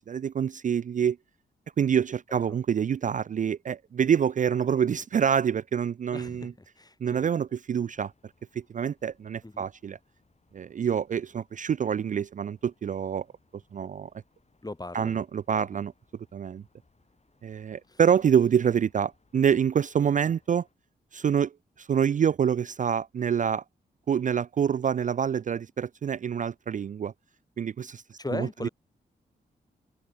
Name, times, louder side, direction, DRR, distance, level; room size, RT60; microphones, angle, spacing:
voice 1, 0.1-1.2 1.8-6.5 7.0-8.1 8.7-10.0 10.5-13.3 13.7-14.1 14.9-15.9 16.3-16.6 17.4-20.7 21.1-21.5 21.8-23.6 24.1-27.1 27.6-28.7, right 8 dB, 45° right, 0.4 m, -26 dB
voice 2, 6.1-7.3 9.4-9.7 14.6-15.2 15.7-15.8 17.9-18.0 28.2-28.7, left 2 dB, 20° left, 2.1 m, -38 dB
sound 1, 7.7-20.7, left 3 dB, 35° left, 7.7 m, -68 dB
supercardioid pair, 45°, 19 cm